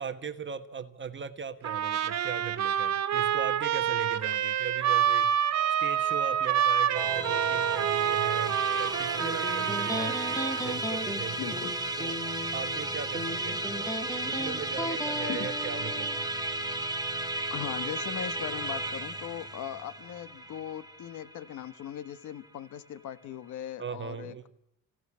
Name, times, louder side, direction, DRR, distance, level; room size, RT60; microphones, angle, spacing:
voice 1, 0.0-10.2 10.6-11.6 12.0-12.2 12.5-16.2 23.8-24.5, right 6 dB, 40° right, 8 dB, 1.4 m, -39 dB
Trumpet, 1.6-10.8, right 9 dB, 65° right, 2.2 m, -27 dB
Musical instrument, 6.9-22.5, right 2 dB, 15° right, 2.8 m, -34 dB
Electric guitar, 9.2-16.2, left 1 dB, 10° left, 3.0 m, -36 dB
voice 2, 11.4-11.7 15.3-15.5 17.5-24.5, left 10 dB, 75° left, 14 dB, 1.5 m, -39 dB
26.5 x 17.0 x 8.6 m, 0.83 s
cardioid pair, 90°, 30 cm